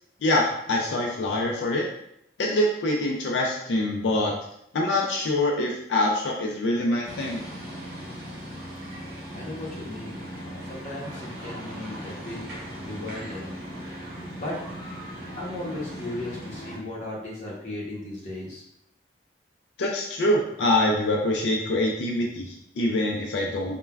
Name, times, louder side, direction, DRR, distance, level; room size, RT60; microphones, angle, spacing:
voice 1, 0.2-1.9 2.4-4.3 4.7-7.4 19.8-23.8, left 1 dB, 90° left, -1 dB, 0.4 m, -25 dB
sound 1, 7.0-16.8, equal, 55° right, 0.8 m, -38 dB
voice 2, 9.3-10.2 10.7-12.4 12.8-13.6 14.3-14.6 15.4-18.6, left 1 dB, 45° left, -5 dB, 0.8 m, -36 dB
3.2 x 2.1 x 2.3 m, 0.75 s
head